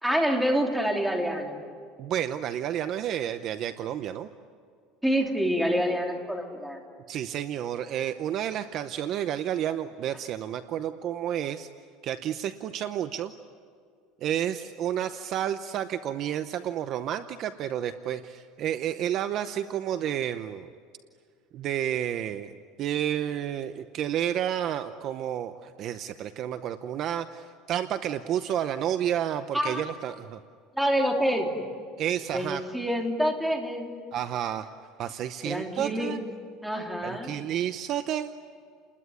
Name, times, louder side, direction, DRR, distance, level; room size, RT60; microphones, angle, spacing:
voice 1, 0.0-1.6 5.0-6.8 29.5-29.8 30.8-31.5 32.3-34.0 35.4-36.1 36.6-37.4, equal, ahead, 1 dB, 3.0 m, -27 dB
voice 2, 2.0-4.3 7.1-11.7 12.0-13.3 14.2-20.7 21.5-30.4 32.0-32.6 34.1-34.7 35.0-36.2 37.0-38.3, right 10 dB, 40° right, 10 dB, 0.8 m, -30 dB
29.5 x 21.0 x 9.7 m, 2.2 s
cardioid pair, 160°, 0 cm